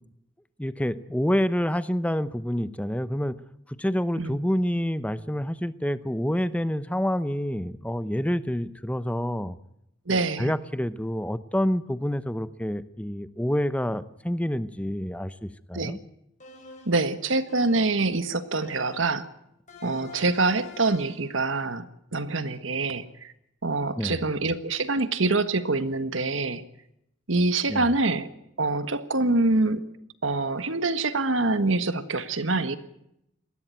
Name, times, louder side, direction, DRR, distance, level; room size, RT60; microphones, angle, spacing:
voice 1, 0.6-3.4 3.8-9.6 10.1-16.0 24.0-24.2 27.7-27.9, equal, 5° left, 14 dB, 0.8 m, -28 dB
voice 2, 10.1-10.5 15.7-16.0 16.8-19.2 19.8-21.9 22.1-23.3 23.6-26.6 27.3-28.3 28.6-29.8 30.2-32.8, right 3 dB, 80° right, 11 dB, 1.6 m, -25 dB
sound 1, 16.4-17.1 17.5-18.1 18.6-19.2 19.7-21.3, left 2 dB, 40° left, 5.0 m, -46 dB
20.0 x 15.5 x 9.3 m, 0.79 s
head